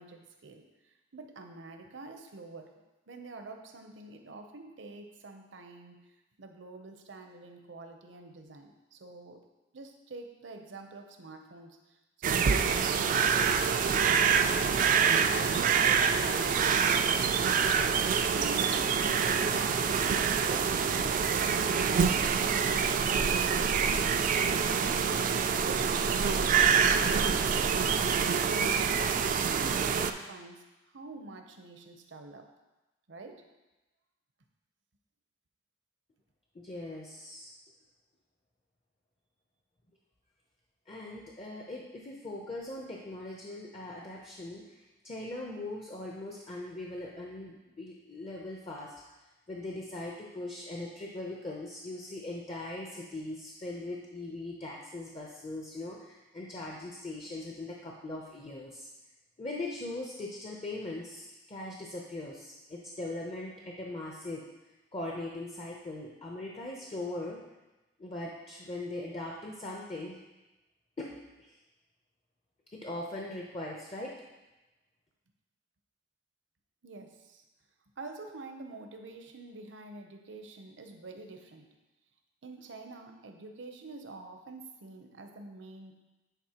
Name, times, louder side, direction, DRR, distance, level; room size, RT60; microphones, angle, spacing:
voice 1, 0.0-2.8 3.1-6.0 6.4-9.4 9.7-14.4 14.9-17.6 18.3-22.1 22.5-24.9 25.5-28.9 29.4-30.6 30.9-32.5 33.1-33.5 76.8-77.4 78.0-81.8 82.4-86.1, right 3 dB, 70° right, 5 dB, 0.7 m, -47 dB
sound 1, 12.2-30.1, right 6 dB, 45° right, 0.3 m, -26 dB
voice 2, 36.5-37.5 40.9-44.8 45.0-48.9 49.5-58.9 59.4-64.4 64.9-67.4 68.0-70.2 71.0-71.6 72.7-74.1, left 2 dB, 30° left, -1 dB, 0.6 m, -40 dB
9.2 x 4.2 x 2.9 m, 1.1 s
head